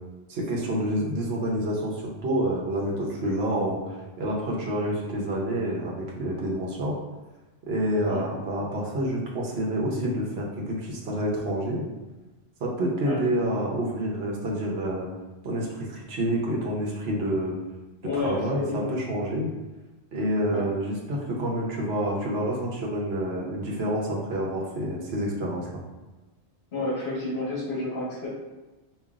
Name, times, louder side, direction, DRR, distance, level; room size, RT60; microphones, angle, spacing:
voice 1, 0.3-7.0 7.7-11.8 12.6-15.1 15.4-17.5 18.1-19.5 20.1-25.8, right 1 dB, 65° right, -2 dB, 1.1 m, -28 dB
voice 2, 18.0-19.0 20.5-20.6 26.7-28.3, left 2 dB, 65° left, -5 dB, 1.4 m, -30 dB
5.1 x 2.5 x 2.4 m, 1.1 s
omnidirectional pair, 1.2 m